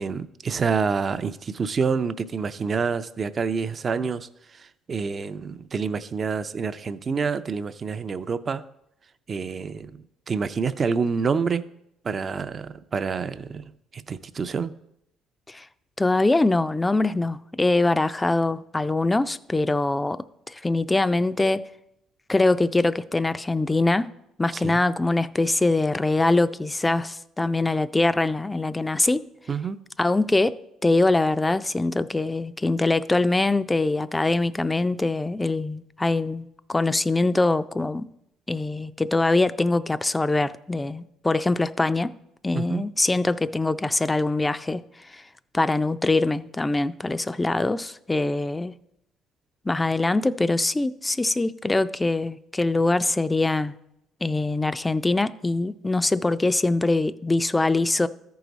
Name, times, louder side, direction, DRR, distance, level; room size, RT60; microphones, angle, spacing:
voice 1, 0.0-4.3 4.9-8.6 9.3-10.0 10.3-11.6 12.0-13.6 13.9-14.7 24.5-24.8 29.5-29.8 42.5-42.8, right 5 dB, 40° right, 0.5 m, -27 dB
voice 2, 16.0-21.7 22.3-24.1 24.4-29.2 30.0-30.6 30.8-38.1 38.5-42.2 42.4-45.2 45.5-48.7 49.7-53.7 54.2-58.1, left 2 dB, 15° left, 0.4 m, -23 dB
13.5 x 4.8 x 4.0 m
supercardioid pair, 80°, 0 cm